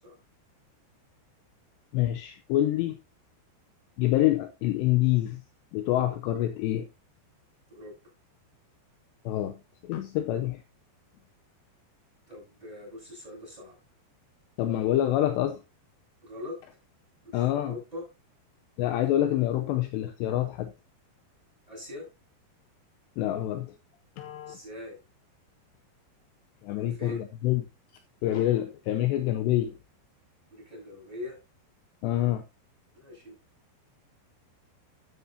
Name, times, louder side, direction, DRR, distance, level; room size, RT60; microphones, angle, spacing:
voice 1, 1.9-3.0 4.0-5.4 5.7-6.9 9.3-10.6 14.6-15.6 17.3-17.7 18.8-20.7 23.2-23.8 24.2-24.6 26.6-27.6 28.2-29.7 32.0-32.4, left 13 dB, 80° left, 2.8 m, -26 dB
voice 2, 12.3-13.8 16.2-16.6 17.2-18.1 21.7-22.1 24.5-25.0 26.7-27.2 30.5-31.4 32.9-33.4, left 2 dB, 10° right, 7.9 m, -41 dB
13.0 x 9.2 x 2.7 m
omnidirectional pair, 5.2 m